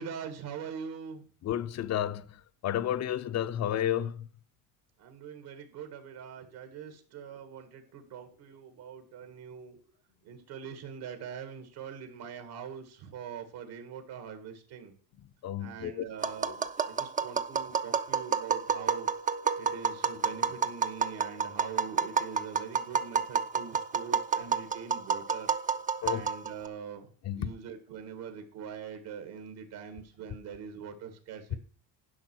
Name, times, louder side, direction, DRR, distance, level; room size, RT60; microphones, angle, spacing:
voice 1, 0.0-1.2 5.0-9.8 10.2-14.9 15.6-19.1 19.6-25.5 26.0-31.6, right 7 dB, 70° right, 2.0 m, -43 dB
voice 2, 1.4-2.3 2.6-4.3 15.4-16.0 16.4-16.5 26.0-26.3 27.2-27.5, left 11 dB, 40° left, 0.6 m, -31 dB
Tap, 16.2-26.7, right 6 dB, 20° right, 0.5 m, -30 dB
11.0 x 5.6 x 6.2 m
cardioid pair, 120°, 40 cm